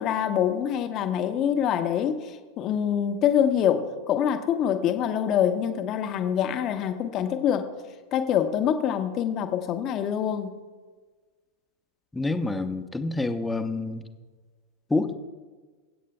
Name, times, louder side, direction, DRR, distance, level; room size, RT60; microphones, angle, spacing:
voice 1, 0.0-7.7 8.1-10.5, left 9 dB, 35° left, 8 dB, 0.9 m, -25 dB
voice 2, 12.1-14.1 14.9-15.1, left 2 dB, 10° left, 8 dB, 0.8 m, -27 dB
25.5 x 8.4 x 2.3 m, 1.4 s
figure-of-eight pair, 90°, 0 cm